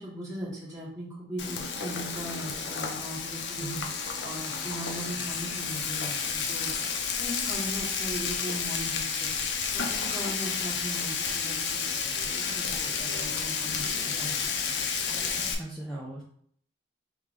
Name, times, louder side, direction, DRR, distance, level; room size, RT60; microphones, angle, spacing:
voice 1, 0.0-3.7 4.2-6.7 7.2-9.3 9.7-14.7 15.0-15.2, equal, 20° right, -7 dB, 1.7 m, -39 dB
Frying (food), 1.4-15.5, left 6 dB, 70° left, 0.5 m, -31 dB
voice 2, 3.6-3.9 15.3-16.2, right 1 dB, ahead, -6 dB, 0.5 m, -38 dB
3.3 x 2.8 x 3.7 m, 0.63 s
head